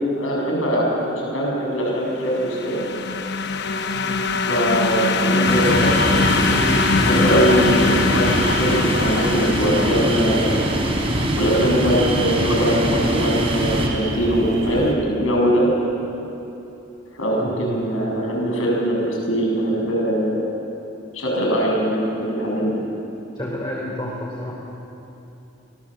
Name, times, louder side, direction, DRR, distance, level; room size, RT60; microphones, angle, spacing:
voice 1, 0.0-2.7 4.5-6.7 6.9-10.6 11.4-15.7 17.1-20.4 21.1-22.8, equal, 85° left, -2 dB, 7.0 m, -21 dB
sound 1, 2.2-10.9, left 4 dB, 60° left, 1.1 m, -22 dB
voice 2, 3.9-4.3 17.4-17.8 23.3-24.5, left 1 dB, 20° left, -4 dB, 3.8 m, -30 dB
sound 2, 5.4-13.9, right 1 dB, 30° right, 3.5 m, -23 dB
sound 3, 5.7-14.9, right 1 dB, 85° right, 3.4 m, -30 dB
25.0 x 19.0 x 7.7 m, 2.9 s
head